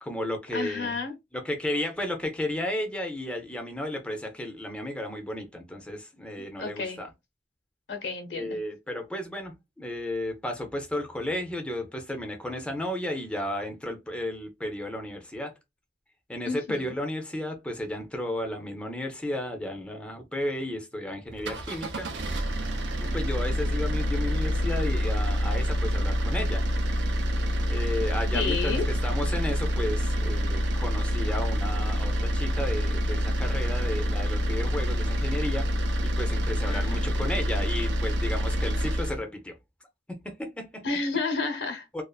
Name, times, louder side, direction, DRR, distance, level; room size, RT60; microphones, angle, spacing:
voice 1, 0.0-1.0 1.3-7.1 8.3-15.5 16.3-22.1 23.0-26.6 27.7-35.7 36.0-39.5 40.1-40.9 41.9-42.0, left 1 dB, 5° left, 0.4 m, -33 dB
voice 2, 0.5-1.1 6.4-7.0 7.9-8.6 16.5-17.0 28.3-28.8 36.7-37.0 40.8-41.9, left 4 dB, 85° left, 0.8 m, -31 dB
sound 1, 21.3-39.2, equal, 85° right, 0.6 m, -27 dB
2.4 x 2.4 x 2.3 m
head